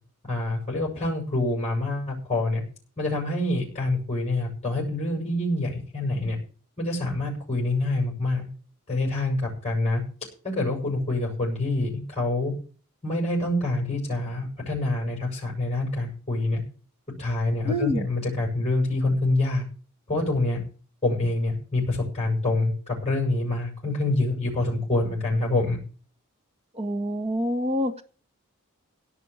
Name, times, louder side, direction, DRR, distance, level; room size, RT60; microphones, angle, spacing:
voice 1, 0.3-2.6 3.0-6.4 6.8-8.5 8.9-10.0 10.4-12.5 13.0-16.6 17.2-19.6 20.1-20.6 21.0-25.8, left 2 dB, 30° left, -3 dB, 7.1 m, -26 dB
voice 2, 17.6-18.1 26.7-28.0, equal, 30° right, 8 dB, 1.6 m, -26 dB
17.5 x 6.0 x 8.3 m, 0.40 s
head